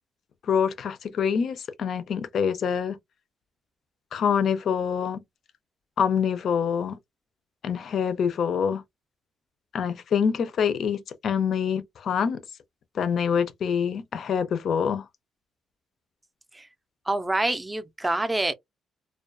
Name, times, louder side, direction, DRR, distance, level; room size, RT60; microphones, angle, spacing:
voice 1, 0.4-3.0 4.1-5.2 6.0-7.0 7.6-8.8 9.7-12.4 12.9-15.1, left 7 dB, 60° left, 0.4 m, -25 dB
voice 2, 17.1-18.5, right 2 dB, 15° right, 0.4 m, -26 dB
2.2 x 2.2 x 2.5 m
cardioid pair, 90°, 0 cm